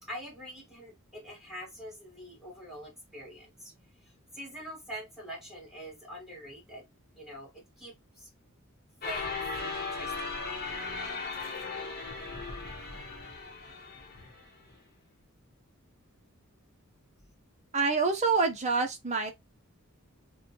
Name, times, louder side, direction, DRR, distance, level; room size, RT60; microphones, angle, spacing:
voice 1, 0.0-3.7 4.0-6.9 7.1-8.3 9.0-9.4 9.7-10.5, equal, ahead, 1.7 m, -45 dB
sound 1, 9.0-14.7, left 4 dB, 45° left, 0.9 m, -37 dB
voice 2, 17.7-19.3, right 4 dB, 35° right, 0.7 m, -26 dB
4.1 x 2.2 x 2.9 m
head